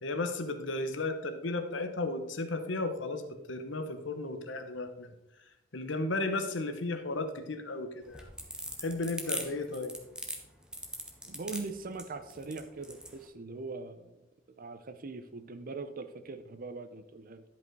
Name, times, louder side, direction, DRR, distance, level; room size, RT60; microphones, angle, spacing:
voice 1, 0.0-5.1 5.7-8.3 8.8-9.9, left 2 dB, 65° left, 8 dB, 1.0 m, -34 dB
sound 1, 8.0-13.1, right 1 dB, 5° right, 1.1 m, -39 dB
voice 2, 11.3-14.2 14.6-17.4, right 3 dB, 45° right, 10 dB, 0.6 m, -41 dB
11.0 x 5.3 x 4.6 m, 0.88 s
head